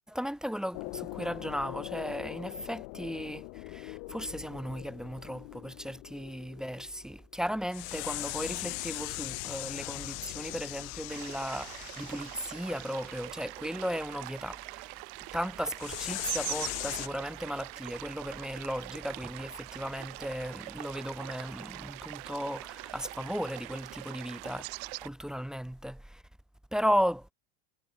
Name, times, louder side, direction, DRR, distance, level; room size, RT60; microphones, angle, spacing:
voice 1, 0.1-14.9 15.3-26.2 26.7-27.3, equal, ahead, 0.6 m, -35 dB
sound 1, 0.7-7.1 7.7-13.2 15.8-17.1, left 40 dB or more, 50° left, 0.5 m, -40 dB
sound 2, 11.1-25.1, right 36 dB, 65° right, 3.8 m, -43 dB
cardioid pair, 165°, 44 cm